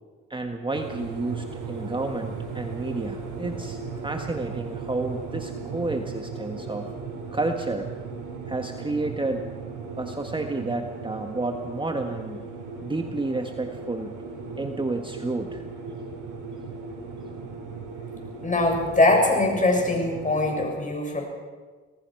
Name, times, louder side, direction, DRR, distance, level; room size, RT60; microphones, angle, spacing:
voice 1, 0.3-6.9 7.3-7.9 8.5-9.5 10.0-12.5 12.8-14.1 14.6-15.6, right 2 dB, 15° right, 5 dB, 1.5 m, -30 dB
sound 1, 0.7-20.6, right 4 dB, 80° right, 6.0 m, -37 dB
voice 2, 18.4-21.2, left 2 dB, 25° left, 2 dB, 7.1 m, -22 dB
27.0 x 18.0 x 6.0 m, 1.4 s
cardioid pair, 90°, 30 cm